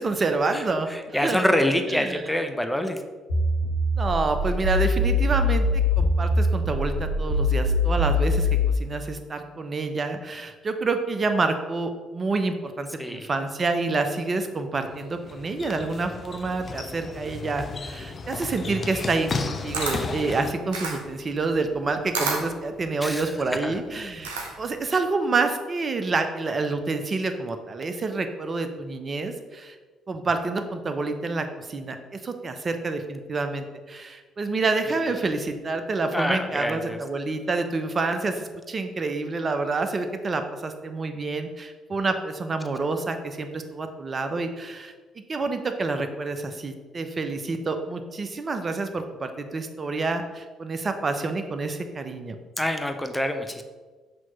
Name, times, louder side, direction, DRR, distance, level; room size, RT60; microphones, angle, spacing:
voice 1, 0.0-1.6 1.9-2.2 4.0-8.5 8.8-24.3 24.6-29.8 30.1-44.9 45.3-52.4, right 3 dB, 40° right, 7 dB, 0.7 m, -28 dB
voice 2, 0.9-3.0 13.0-13.3 23.0-23.3 23.6-23.7 36.1-37.0 52.6-53.6, left 1 dB, 5° left, 6 dB, 0.8 m, -26 dB
sound 1, 3.3-8.8, left 2 dB, 85° left, 1.6 m, -23 dB
sound 2, 14.9-20.5, left 4 dB, 40° left, 0.6 m, -34 dB
Camera, 19.3-24.8, right 3 dB, 85° right, 0.8 m, -32 dB
6.1 x 3.0 x 5.7 m, 1.4 s
hypercardioid pair, 45°, 0 cm